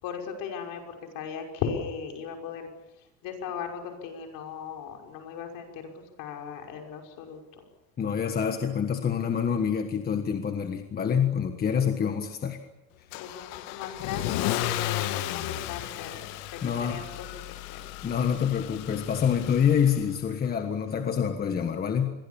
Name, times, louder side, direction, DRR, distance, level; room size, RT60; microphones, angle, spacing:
voice 1, 0.0-2.7 3.2-7.6 13.1-17.3 17.7-17.8, left 7 dB, 55° left, 3 dB, 5.9 m, -37 dB
voice 2, 8.0-12.6 16.6-17.0 18.0-22.1, left 7 dB, 25° left, 6 dB, 1.5 m, -26 dB
Car / Engine starting / Accelerating revving vroom, 13.1-20.2, left 15 dB, 80° left, 1.6 m, -34 dB
28.0 x 22.5 x 7.2 m, 1.0 s
cardioid pair, 165°, 40 cm